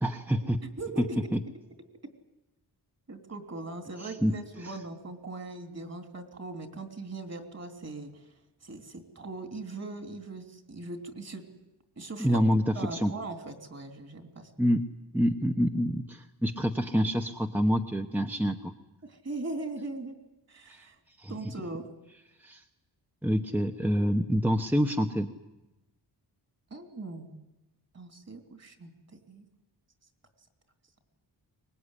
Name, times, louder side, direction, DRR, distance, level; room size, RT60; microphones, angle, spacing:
voice 1, 0.0-0.6 1.3-1.4 4.0-4.3 4.6-4.7 12.2-13.1 14.6-14.8 15.1-18.7 20.7-20.9 21.2-21.3 22.4-22.6 23.2-25.3, equal, 5° right, 4 dB, 1.0 m, -27 dB
voice 2, 0.8-1.2 3.1-8.2 8.6-11.4 12.0-12.4 12.7-14.5 19.0-20.2 20.5-21.0 21.3-21.9 26.7-27.3 27.9-28.9 29.3-29.5, right 3 dB, 40° right, 6 dB, 3.1 m, -40 dB
24.0 x 20.5 x 9.9 m, 0.99 s
wide cardioid pair, 140°, 41 cm